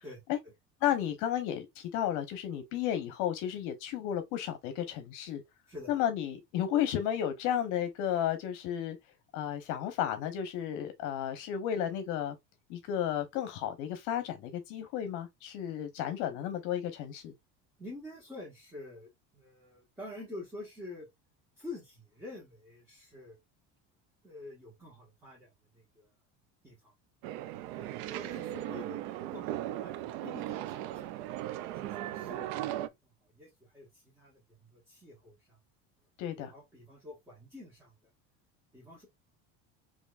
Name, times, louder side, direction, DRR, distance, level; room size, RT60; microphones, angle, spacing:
voice 1, 0.0-0.5 5.7-5.9 17.8-21.1 21.6-23.4 24.2-26.1 26.6-26.9 27.7-29.0 29.3-31.1 31.7-32.8 33.2-35.6 36.4-37.9 38.7-39.1, left 2 dB, 5° right, 1.4 m, -48 dB
voice 2, 0.8-5.4 5.9-9.0 9.3-12.4 12.7-17.3 36.2-36.5, left 10 dB, 65° left, 0.8 m, -33 dB
sound 1, 27.2-32.9, right 13 dB, 75° right, 0.5 m, -37 dB
4.4 x 3.0 x 2.4 m
cardioid pair, 155°, 33 cm